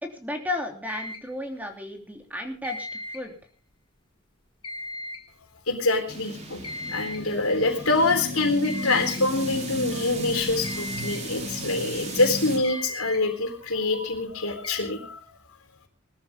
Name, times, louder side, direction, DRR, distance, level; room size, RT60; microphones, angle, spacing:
voice 1, 0.0-2.9 3.1-3.3, left 2 dB, 10° right, 3 dB, 3.0 m, -33 dB
sound 1, 0.8-1.3 2.6-3.3 4.6-5.3 6.6-7.3 8.6-9.3 10.6-11.3 12.6-13.3 14.6-14.7, left 1 dB, 25° left, 2.9 m, -37 dB
voice 2, 5.7-6.6 6.9-15.2, left 2 dB, 90° left, 4 dB, 4.0 m, -25 dB
sound 2, 6.1-12.6, equal, 35° right, 3.5 m, -34 dB
21.0 x 13.5 x 3.7 m, 0.37 s
head